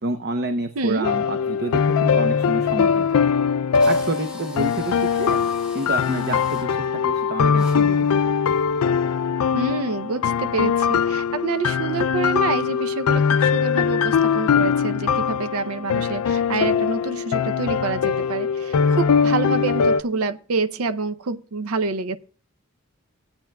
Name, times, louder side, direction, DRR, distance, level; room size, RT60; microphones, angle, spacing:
voice 1, 0.0-3.2 3.9-5.4 5.7-8.2, right 2 dB, 50° right, 0.8 m, -28 dB
voice 2, 0.8-1.1 9.5-22.2, right 4 dB, 90° right, 0.6 m, -27 dB
sound 1, 1.0-20.0, left 6 dB, 75° left, 0.4 m, -21 dB
Drill, 3.1-3.2 3.7-6.7 7.5-7.8, equal, 5° right, 2.3 m, -42 dB
17.0 x 8.9 x 2.2 m
head